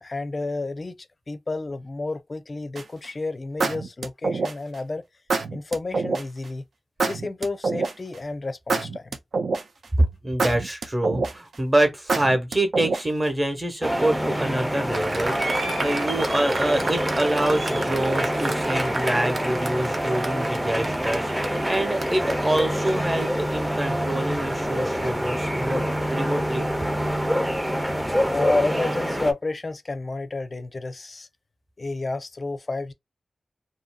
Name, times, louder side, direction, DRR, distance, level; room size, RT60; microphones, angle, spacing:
voice 1, 0.0-1.0 1.3-5.0 5.5-6.6 7.1-9.2 28.3-31.3 31.8-32.9, left 3 dB, 40° left, 0.4 m, -30 dB
sound 1, 2.8-3.1 3.6-4.8 5.3-6.2 7.0-8.2 8.7-9.8 10.4-11.5 12.1-13.2, right 4 dB, 80° right, 0.4 m, -26 dB
voice 2, 9.9-25.8 26.1-26.7, right 1 dB, 25° right, 1.0 m, -26 dB
sound 2, 13.8-29.3, equal, 5° right, 0.5 m, -26 dB
Applause, 14.9-23.3, right 2 dB, 55° right, 0.8 m, -32 dB
2.7 x 2.7 x 2.2 m
wide cardioid pair, 95°, 0 cm